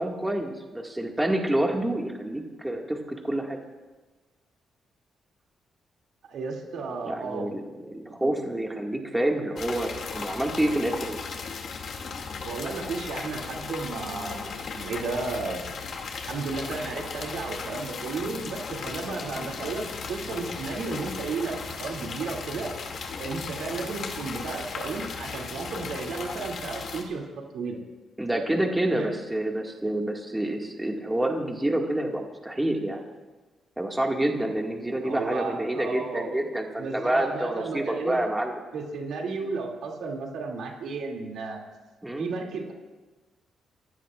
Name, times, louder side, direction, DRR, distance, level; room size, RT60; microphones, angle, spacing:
voice 1, 0.0-3.6 7.0-11.3 28.2-33.0 33.8-38.6 42.0-42.3, right 1 dB, 10° right, 1 dB, 2.0 m, -28 dB
voice 2, 6.3-7.5 12.4-15.7 16.3-22.7 23.2-27.2 27.5-27.8 28.8-29.2 35.0-36.4 36.8-38.2 38.7-41.6 42.2-42.7, right 4 dB, 75° right, 0 dB, 2.7 m, -33 dB
sound 1, 9.6-27.0, left 5 dB, 65° left, 2.5 m, -36 dB
30.0 x 15.5 x 2.5 m, 1.2 s
cardioid pair, 80°, 0 cm